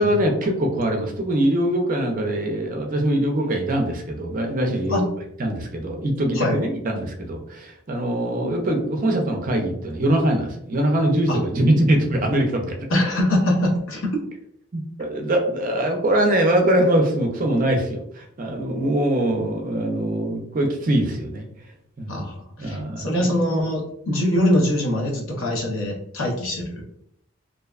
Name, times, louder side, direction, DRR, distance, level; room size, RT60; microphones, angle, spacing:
voice 1, 0.0-5.1 5.4-12.7 14.7-21.4 22.0-22.3 22.6-23.3, right 1 dB, 40° right, 2 dB, 0.4 m, -22 dB
voice 2, 12.9-14.0 22.1-26.8, left 1 dB, 80° left, 0 dB, 0.7 m, -23 dB
2.6 x 2.1 x 2.3 m, 0.74 s
head